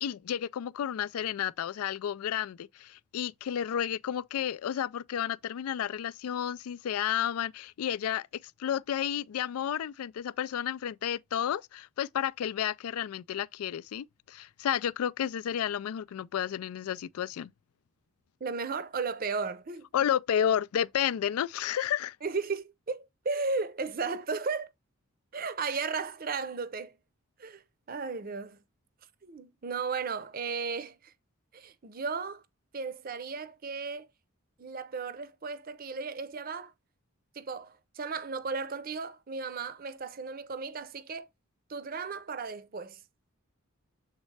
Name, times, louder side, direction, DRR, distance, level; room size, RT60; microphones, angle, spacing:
voice 1, 0.0-8.3 8.6-17.5 19.9-22.2, left 9 dB, 90° left, 0.3 m, -31 dB
voice 2, 18.4-19.9 22.2-24.7 25.3-27.0 27.4-27.6 27.9-28.6 29.2-31.1 31.5-32.4 32.7-34.1 34.6-36.7 37.3-41.3 41.7-43.0, right 4 dB, 40° right, 0.6 m, -35 dB
7.3 x 4.0 x 3.3 m
head